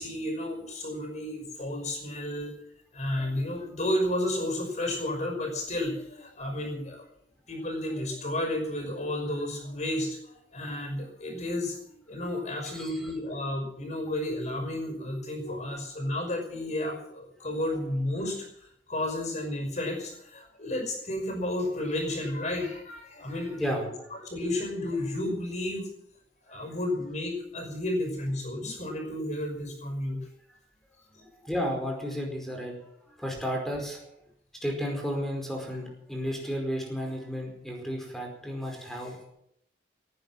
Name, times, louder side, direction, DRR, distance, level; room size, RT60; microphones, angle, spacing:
voice 1, 0.0-2.5 2.9-7.1 7.5-18.5 18.9-23.9 24.2-25.9 26.5-30.2 31.1-31.3, left 1 dB, 40° left, 4 dB, 5.7 m, -32 dB
voice 2, 23.5-24.1 31.4-32.8 33.2-34.0 34.6-39.3, equal, ahead, 1 dB, 4.9 m, -32 dB
18.5 x 9.8 x 7.6 m, 0.73 s
head